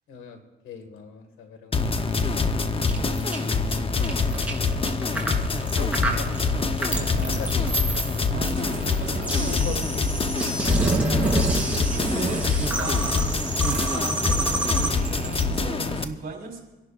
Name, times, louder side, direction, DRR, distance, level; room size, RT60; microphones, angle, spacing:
voice 1, 0.1-0.4 0.6-2.1 3.0-3.3 5.5-6.3 6.9-7.7 9.4-10.2 10.8-11.1, left 4 dB, 90° left, 6 dB, 1.9 m, -39 dB
sound 1, 1.7-16.0, left 4 dB, 30° left, 0.9 m, -25 dB
sound 2, 2.8-15.4, right 2 dB, 5° right, 3.0 m, -28 dB
voice 2, 8.3-9.6 10.7-11.2 11.5-13.0 13.3-16.6, right 4 dB, 50° right, 0 dB, 4.0 m, -37 dB
27.5 x 11.0 x 2.5 m, 1.1 s
cardioid pair, 90°, 20 cm